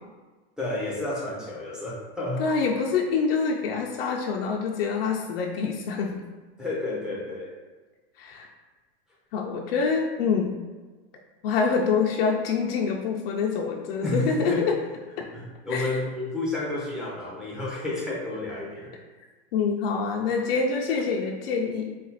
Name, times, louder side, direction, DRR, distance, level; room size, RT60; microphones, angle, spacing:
voice 1, 0.6-2.5 6.6-7.6 14.0-14.7 15.3-18.9, left 2 dB, ahead, -6 dB, 0.6 m, -31 dB
voice 2, 2.4-6.2 8.2-8.5 9.3-10.5 11.4-14.8 15.2-15.3 15.7-15.9 19.5-21.9, left 5 dB, 65° left, 0 dB, 0.6 m, -26 dB
4.2 x 2.4 x 4.0 m, 1.3 s
supercardioid pair, 155°, 31 cm